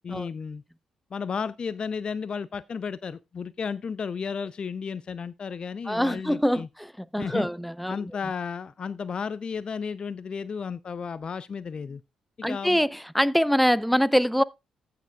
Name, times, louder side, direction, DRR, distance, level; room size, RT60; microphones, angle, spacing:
voice 1, 0.0-0.6 1.1-6.7 7.2-7.5 7.9-12.0 12.5-12.8, left 6 dB, 45° left, 0.5 m, -33 dB
voice 2, 5.9-8.0 12.4-14.4, equal, ahead, 0.6 m, -24 dB
15.0 x 6.8 x 2.3 m
hypercardioid pair, 40°, 2 cm